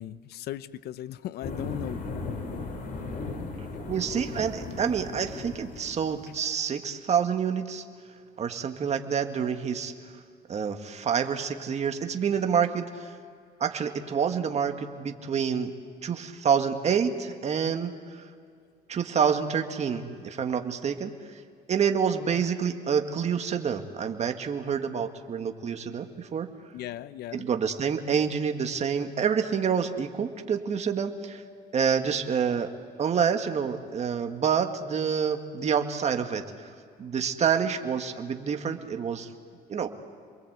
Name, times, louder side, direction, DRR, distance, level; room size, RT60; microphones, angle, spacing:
voice 1, 0.0-2.0 26.7-27.5, left 13 dB, 70° left, 16 dB, 0.8 m, -37 dB
sound 1, 1.4-6.3, left 3 dB, 55° left, 4.2 m, -37 dB
voice 2, 3.7-7.8 8.4-9.9 10.5-13.1 13.6-15.7 16.0-18.2 18.9-21.1 21.7-26.5 27.3-31.4 31.7-32.7 33.0-36.7 37.0-39.3 39.7-39.9, right 7 dB, 40° right, 6 dB, 1.9 m, -27 dB
28.5 x 22.5 x 8.1 m, 2.2 s
cardioid pair, 110°, 17 cm